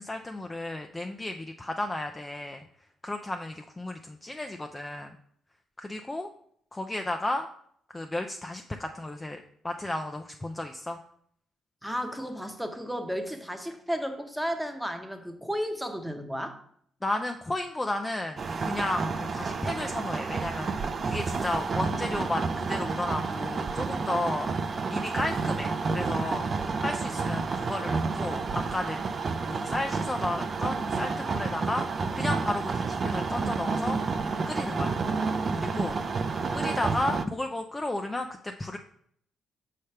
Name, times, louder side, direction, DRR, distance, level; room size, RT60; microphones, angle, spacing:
voice 1, 0.0-2.6 3.0-5.1 5.8-6.3 6.7-7.5 7.9-11.0 17.0-20.7 21.1-26.5 26.8-29.0 29.4-31.9 32.1-34.0 34.5-35.0 35.5-36.0 36.5-38.8, left 2 dB, 20° left, 5 dB, 0.4 m, -33 dB
voice 2, 11.8-16.6 19.0-19.2, equal, ahead, 6 dB, 0.8 m, -33 dB
sound 1, 18.4-37.2, right 4 dB, 40° right, 0.4 m, -30 dB
5.5 x 3.3 x 5.6 m, 0.65 s
cardioid pair, 90°, 0 cm